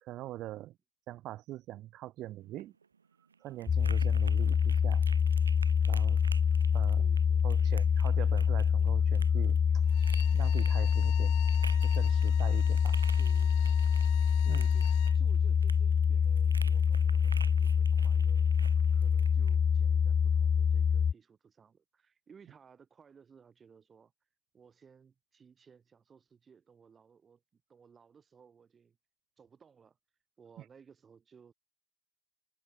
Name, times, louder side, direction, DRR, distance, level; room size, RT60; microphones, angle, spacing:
voice 1, 0.0-0.8 1.1-2.7 3.4-5.0 5.8-6.2 6.7-7.1 7.4-9.8 10.3-11.4 11.8-13.0 14.4-14.7 30.6-30.7, right 15 dB, 45° right, 2.4 m, -43 dB
sound 1, 2.4-19.6, right 5 dB, 85° right, 1.7 m, -51 dB
sound 2, 3.7-21.1, left 7 dB, 25° left, 0.3 m, -26 dB
voice 2, 7.0-7.8 13.2-13.6 14.4-18.5 18.9-24.1 24.5-29.0 29.4-30.0 30.4-31.5, right 6 dB, 25° right, 6.8 m, -59 dB
Bowed string instrument, 9.8-15.2, left 40 dB or more, 55° left, 0.7 m, -48 dB
hypercardioid pair, 90°, 0 cm